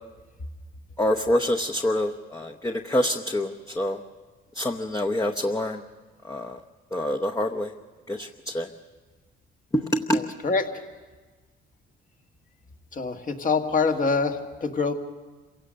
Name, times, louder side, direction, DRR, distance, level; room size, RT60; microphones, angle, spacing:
voice 1, 1.0-4.0 4.5-5.8 6.2-6.6 6.9-7.7 8.1-8.7 9.7-10.2, left 1 dB, 15° left, 2 dB, 0.9 m, -26 dB
voice 2, 10.1-10.7 12.9-14.9, left 4 dB, 45° left, 5 dB, 1.7 m, -25 dB
27.0 x 17.0 x 6.4 m, 1.3 s
cardioid pair, 90°, 20 cm